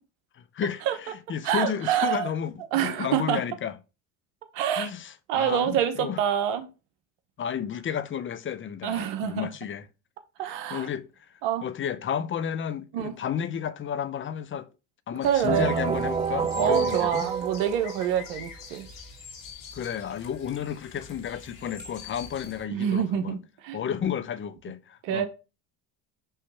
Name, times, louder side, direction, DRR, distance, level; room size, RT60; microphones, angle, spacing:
voice 1, 0.4-2.5 2.8-3.7 4.8-6.2 7.4-9.8 10.4-11.1 11.6-14.7 15.1-17.3 19.7-23.4 23.7-25.3, left 8 dB, 30° left, 0.6 m, -32 dB
voice 2, 1.4-2.3 2.7-3.4 4.5-4.9 5.3-6.7 8.8-9.5 10.4-10.9 11.4-11.6 12.9-13.2 15.2-15.7 16.6-18.9 22.7-23.8 25.0-25.3, right 10 dB, 80° right, 1.2 m, -26 dB
sound 1, 15.2-22.6, left 5 dB, 60° left, 2.4 m, -45 dB
sound 2, 15.5-18.3, right 6 dB, 20° right, 0.3 m, -28 dB
5.6 x 3.2 x 5.6 m
supercardioid pair, 90°, 38 cm